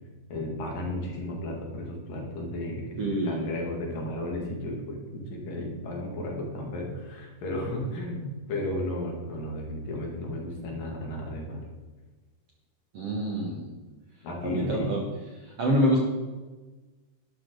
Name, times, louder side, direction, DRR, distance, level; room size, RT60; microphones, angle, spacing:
voice 1, 0.3-11.6 14.2-14.9, left 1 dB, 65° left, 0 dB, 3.7 m, -34 dB
voice 2, 3.0-3.4 12.9-13.7 14.4-15.0 15.4-16.0, equal, 55° right, -1 dB, 1.8 m, -26 dB
12.0 x 11.5 x 3.9 m, 1.3 s
omnidirectional pair, 4.4 m